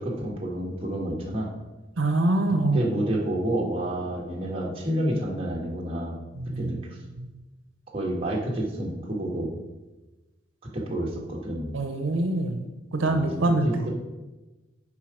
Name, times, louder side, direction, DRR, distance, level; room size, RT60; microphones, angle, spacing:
voice 1, 0.0-1.5 2.7-6.2 6.6-6.8 7.9-9.5 10.7-11.7 13.1-13.3 13.6-13.9, right 1 dB, 30° right, -2 dB, 1.4 m, -29 dB
voice 2, 2.0-2.9 6.3-6.7 7.2-7.3 11.7-12.6 12.9-13.8, right 2 dB, 80° right, 6 dB, 0.7 m, -24 dB
7.3 x 4.8 x 4.9 m, 1.1 s
head